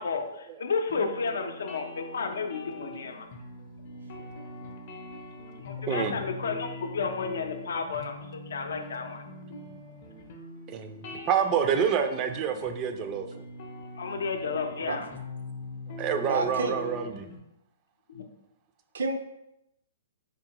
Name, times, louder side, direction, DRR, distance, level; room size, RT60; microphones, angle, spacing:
voice 1, 0.0-3.3 5.6-9.2 14.0-15.1 18.1-18.2, left 5 dB, 85° left, 5 dB, 0.5 m, -32 dB
sound 1, 0.9-17.4, left 2 dB, 40° left, 0.6 m, -42 dB
voice 2, 10.7-13.3 16.0-17.3, right 7 dB, 25° right, 7 dB, 0.3 m, -27 dB
voice 3, 16.2-16.8 18.9-19.1, right 3 dB, 85° right, 5 dB, 0.6 m, -29 dB
3.6 x 3.5 x 2.9 m, 0.84 s
hypercardioid pair, 165°, 0 cm